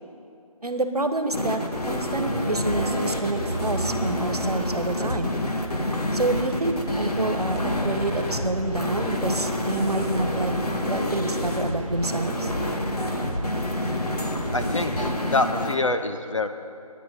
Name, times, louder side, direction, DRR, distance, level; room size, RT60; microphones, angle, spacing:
voice 1, 0.6-1.6 1.9-5.3 6.1-10.5 10.9-12.5, right 2 dB, 80° right, 8 dB, 1.2 m, -28 dB
sound 1, 1.3-15.8, left 1 dB, 85° left, 1.6 m, -28 dB
sound 2, 2.3-14.9, right 2 dB, 55° right, 1.0 m, -37 dB
voice 2, 14.5-16.5, left 2 dB, 55° left, 7 dB, 0.8 m, -25 dB
10.0 x 8.8 x 9.2 m, 2.4 s
figure-of-eight pair, 175°, 19 cm